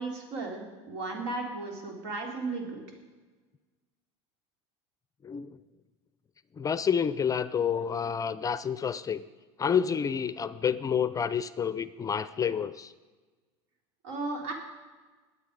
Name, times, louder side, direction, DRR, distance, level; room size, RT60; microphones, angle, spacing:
voice 1, 0.0-2.8 14.0-14.5, right 3 dB, 75° right, 1 dB, 3.9 m, -35 dB
voice 2, 5.2-5.6 6.6-9.2 9.6-12.9, left 7 dB, 25° left, 15 dB, 0.5 m, -29 dB
21.0 x 8.2 x 5.2 m, 1.3 s
supercardioid pair, 100°, 14 cm